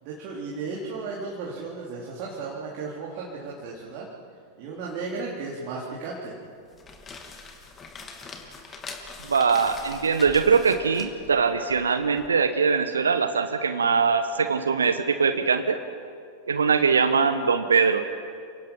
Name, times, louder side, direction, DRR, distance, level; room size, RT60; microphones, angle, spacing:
voice 1, 0.0-4.1 4.6-6.3, right 4 dB, 45° right, -4 dB, 3.6 m, -35 dB
sound 1, 6.6-12.3, left 4 dB, 20° left, 2.8 m, -43 dB
voice 2, 9.3-15.8 16.5-18.0, right 5 dB, 70° right, 10 dB, 1.0 m, -22 dB
29.5 x 18.5 x 5.6 m, 2.2 s
figure-of-eight pair, 90°, 0 cm